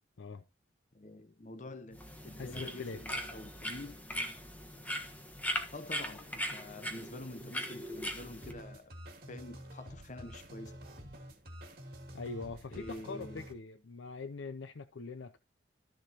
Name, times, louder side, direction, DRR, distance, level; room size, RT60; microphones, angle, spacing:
voice 1, 0.9-4.0 5.7-8.9 9.3-10.8 12.7-13.5, left 2 dB, 40° left, 0.8 m, -47 dB
sound 1, 1.9-8.5, equal, 10° left, 1.3 m, -40 dB
voice 2, 2.4-3.0 12.1-15.4, left 4 dB, 80° left, 0.5 m, -43 dB
sound 2, 8.4-13.5, equal, 50° right, 2.6 m, -49 dB
13.0 x 6.8 x 2.9 m
head